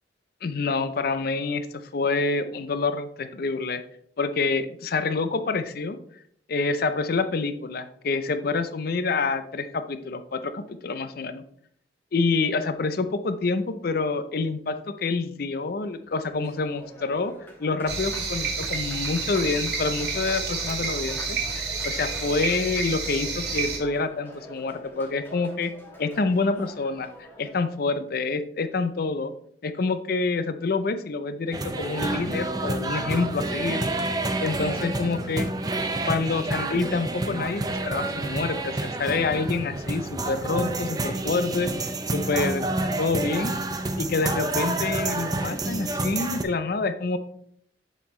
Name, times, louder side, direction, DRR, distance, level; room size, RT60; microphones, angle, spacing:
voice 1, 0.4-1.7 1.9-3.8 4.2-6.0 6.5-11.4 12.1-17.3 17.6-25.7 26.0-29.3 29.6-33.8 34.4-35.5 36.1-41.7 42.1-42.7 43.0-43.5 44.0-47.2, left 4 dB, 55° left, 10 dB, 0.5 m, -27 dB
Applause, 15.9-27.7, equal, 10° left, 1.2 m, -45 dB
sound 1, 17.9-23.8, right 4 dB, 65° right, 1.6 m, -30 dB
sound 2, 31.5-46.4, right 2 dB, 20° right, 0.6 m, -29 dB
7.3 x 5.5 x 3.1 m, 0.65 s
head